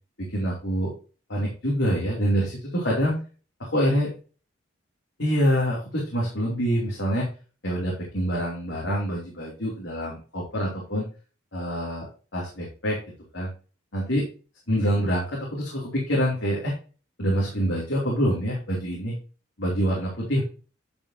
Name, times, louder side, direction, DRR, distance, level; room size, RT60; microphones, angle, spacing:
voice 1, 0.2-0.9 1.3-3.2 3.6-4.1 5.2-7.3 7.6-11.1 11.5-12.1 12.3-13.0 13.3-13.5 13.9-14.2 14.7-16.7 17.2-19.1 19.6-20.4, equal, 70° left, -4 dB, 2.8 m, -26 dB
10.0 x 5.2 x 2.8 m, 0.35 s
head